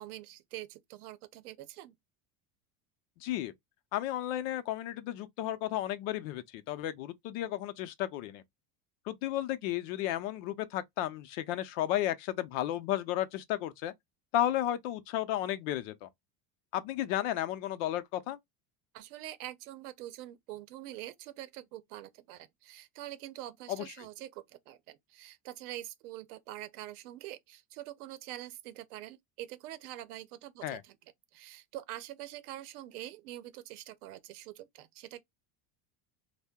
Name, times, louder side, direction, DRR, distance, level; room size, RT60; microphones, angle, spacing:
voice 1, 0.0-1.9 18.9-31.0 31.3-35.2, right 14 dB, 90° right, 0.7 m, -45 dB
voice 2, 3.2-3.5 3.9-8.4 9.1-13.9 14.3-16.1 16.7-18.4 23.7-23.9 30.6-30.8, left 13 dB, 60° left, 0.6 m, -33 dB
2.6 x 2.1 x 3.5 m
cardioid pair, 160°, 43 cm